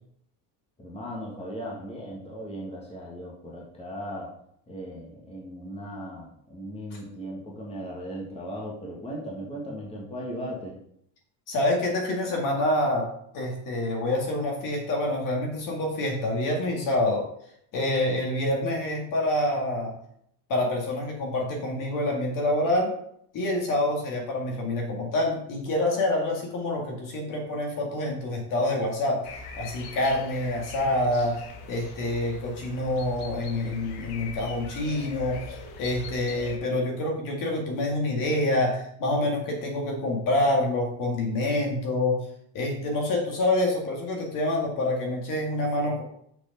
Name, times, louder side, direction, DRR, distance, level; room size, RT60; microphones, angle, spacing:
voice 1, 0.8-4.3 4.7-10.8, equal, 15° left, -4 dB, 1.9 m, -37 dB
voice 2, 11.5-17.3 17.7-19.9 20.5-22.9 23.3-29.3 29.6-35.4 35.8-42.3 42.5-46.0, left 1 dB, 50° left, 0 dB, 2.1 m, -27 dB
sound 1, 29.2-36.6, left 4 dB, 65° left, 1.3 m, -42 dB
6.6 x 5.0 x 5.4 m, 0.69 s
cardioid pair, 165°, 42 cm